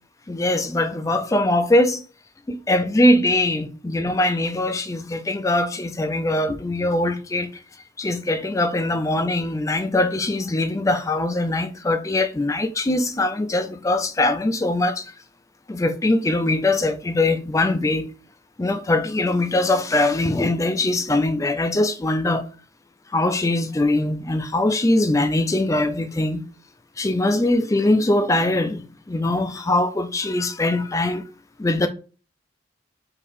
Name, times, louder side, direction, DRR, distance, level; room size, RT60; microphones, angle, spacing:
voice 1, 0.3-2.0 2.5-7.5 8.0-15.1 15.7-18.1 18.6-22.5 23.1-26.4 27.0-31.2 31.6-31.9, left 2 dB, 15° left, 0.3 m, -22 dB
3.4 x 2.8 x 4.2 m
head